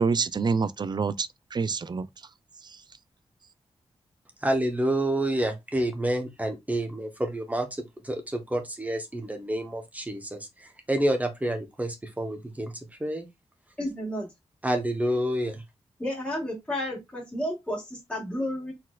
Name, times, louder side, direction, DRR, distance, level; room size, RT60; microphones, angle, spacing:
voice 1, 0.0-2.1 2.6-2.8, right 5 dB, 40° right, 0.4 m, -27 dB
voice 2, 4.4-7.7 8.0-12.7 13.0-13.3 14.6-15.6, right 1 dB, 15° right, 1.0 m, -28 dB
voice 3, 13.8-14.3 16.0-18.7, left 1 dB, 10° left, 1.7 m, -31 dB
4.3 x 4.1 x 2.4 m
wide cardioid pair, 100°, 11 cm